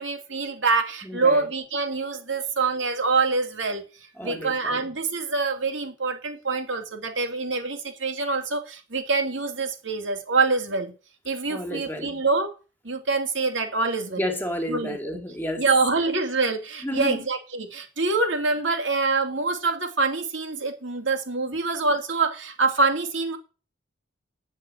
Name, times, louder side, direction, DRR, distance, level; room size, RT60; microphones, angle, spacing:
voice 1, 0.0-3.8 4.2-10.9 11.2-12.5 12.8-14.2 14.7-15.0 15.6-23.4, right 3 dB, 65° right, 2.8 m, -25 dB
voice 2, 1.1-1.4 4.2-4.9 11.5-12.2 14.2-15.6 16.8-17.2, equal, 10° left, 2.3 m, -31 dB
9.4 x 7.6 x 8.8 m
head